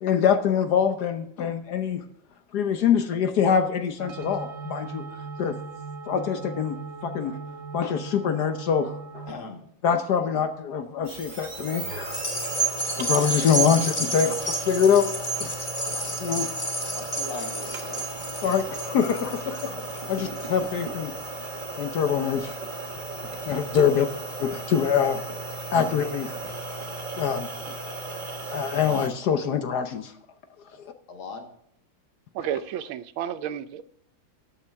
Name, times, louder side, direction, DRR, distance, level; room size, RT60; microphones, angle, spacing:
voice 1, 0.0-2.0 2.5-5.0 5.4-5.6 6.1-7.4 7.7-9.2 9.8-12.3 13.0-15.1 15.4-15.5 15.9-16.5 18.4-21.1 21.8-22.5 23.5-24.1 24.4-25.2 25.7-26.4 27.2-27.5 28.5-30.1, left 7 dB, 60° left, 8 dB, 1.2 m, -24 dB
sound 1, 4.0-9.3, right 4 dB, 60° right, 0.7 m, -39 dB
voice 2, 9.3-9.6 16.9-18.1 23.8-23.9 30.7-30.8 31.1-31.5, left 4 dB, 90° left, 4 dB, 2.6 m, -39 dB
sound 2, 11.0-29.1, right 3 dB, 30° right, 1.1 m, -36 dB
sound 3, 12.1-20.7 21.2-21.3, right 3 dB, 25° left, 1.5 m, -30 dB
voice 3, 32.3-33.8, right 10 dB, 90° right, 13 dB, 1.5 m, -31 dB
13.5 x 8.6 x 3.4 m, 0.70 s
omnidirectional pair, 2.2 m